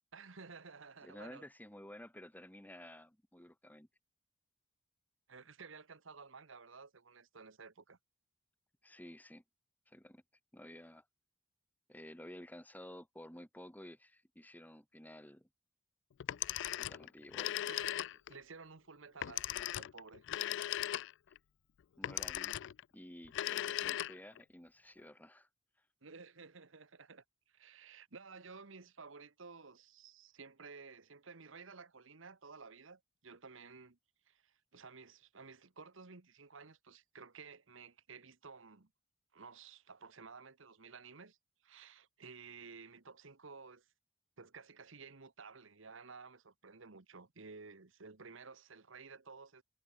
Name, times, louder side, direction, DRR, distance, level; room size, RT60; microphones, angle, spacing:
voice 1, 0.1-1.4 5.3-8.0 16.3-16.8 17.7-20.2 26.0-34.0 34.3-38.9 39.3-41.4 41.6-43.9 44.4-49.6, right 4 dB, 70° right, 1.3 m, -54 dB
voice 2, 1.0-3.9 8.8-9.4 9.9-10.2 10.5-11.0 11.9-15.5 16.8-17.7 22.0-22.6 22.9-25.5, left 1 dB, 10° left, 2.5 m, -53 dB
Telephone, 16.2-18.4 19.2-21.4 22.0-22.8 23.3-24.4, left 13 dB, 65° left, 0.3 m, -38 dB
head